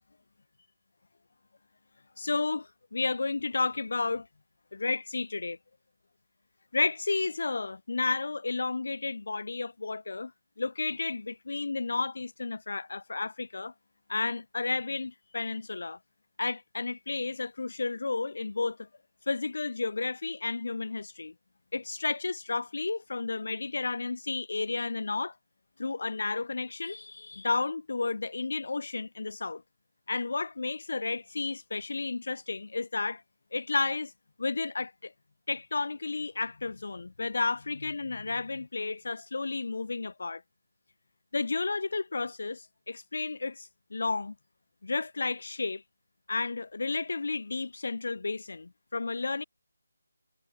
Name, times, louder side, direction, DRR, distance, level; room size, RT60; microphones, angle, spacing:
voice 1, 2.2-4.3 4.7-5.6 6.7-10.3 10.6-13.7 14.1-16.0 16.4-18.9 19.3-21.3 21.7-25.3 25.8-29.6 30.1-33.2 33.5-34.1 34.4-35.1 35.5-40.4 41.3-44.3 44.8-45.8 46.3-49.4, left 3 dB, 60° left, 0.7 m, -32 dB
figure-of-eight pair, 175°, 0 cm